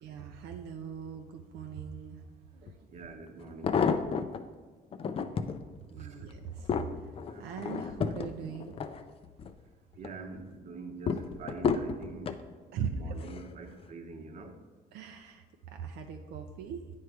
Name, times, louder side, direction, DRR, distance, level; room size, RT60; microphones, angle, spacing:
voice 1, 0.0-2.2 2.5-2.9 5.9-6.7 7.4-8.7 12.7-13.1 14.9-16.9, right 7 dB, 80° right, 4 dB, 0.5 m, -40 dB
voice 2, 2.6-3.8 6.0-6.2 7.3-7.5 10.0-12.4 12.7-14.5, right 4 dB, 45° right, 4 dB, 0.9 m, -45 dB
sound 1, 2.7-2.8 3.4-4.4 4.9-5.6 6.1-9.5 9.9-10.4 11.1-12.4 13.2-13.5 13.8-13.9, left 6 dB, 35° left, 0.4 m, -32 dB
9.1 x 3.2 x 4.7 m, 1.3 s
cardioid pair, 110°, 17 cm